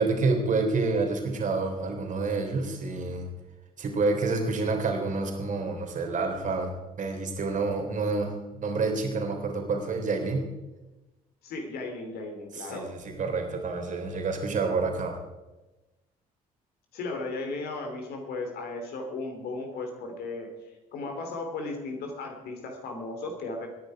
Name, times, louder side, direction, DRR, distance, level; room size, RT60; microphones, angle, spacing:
voice 1, 0.0-3.3 3.8-10.4 12.5-15.2, right 3 dB, 45° right, 3 dB, 3.6 m, -28 dB
voice 2, 11.4-12.9 16.9-20.5 20.9-23.7, left 3 dB, 55° left, 4 dB, 3.0 m, -35 dB
21.5 x 10.5 x 4.8 m, 1.1 s
figure-of-eight pair, 50°, 19 cm